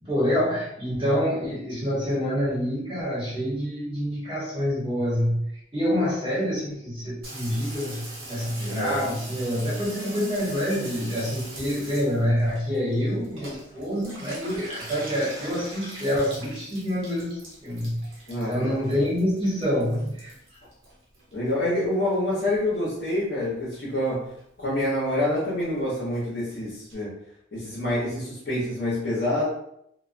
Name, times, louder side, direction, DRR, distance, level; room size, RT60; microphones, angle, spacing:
voice 1, 0.0-18.0 18.4-20.6, equal, 25° right, -8 dB, 0.8 m, -27 dB
Water tap faucet / Bathtub (filling or washing), 7.2-21.8 22.0-22.8 23.1-23.2 23.4-23.5 23.7-24.1 24.4-24.5 24.7-24.8 25.1-25.2 25.4-25.5 25.7-25.8 26.1-26.2 26.5-26.6 26.9-27.0, right 1 dB, 80° right, 0.9 m, -40 dB
voice 2, 18.3-18.7 21.3-24.3 24.6-27.1 27.5-29.5, left 1 dB, 55° left, -7 dB, 0.8 m, -26 dB
2.3 x 2.2 x 2.4 m, 0.75 s
head